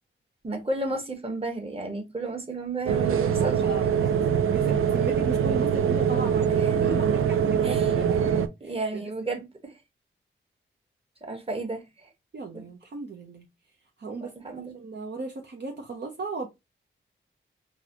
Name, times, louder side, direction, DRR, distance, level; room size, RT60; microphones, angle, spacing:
voice 1, 0.4-3.6 6.6-6.7 7.6-7.9 8.6-9.7 11.2-12.1 12.5-12.6 14.2-14.8, right 3 dB, 25° right, 1.3 m, -33 dB
sound 1, 2.9-8.5, right 8 dB, 85° right, 0.4 m, -23 dB
voice 2, 3.3-8.2 8.6-9.4 12.3-13.4 14.0-16.5, right 3 dB, 55° right, 0.8 m, -36 dB
3.9 x 2.5 x 2.8 m
cardioid pair, 50°, 21 cm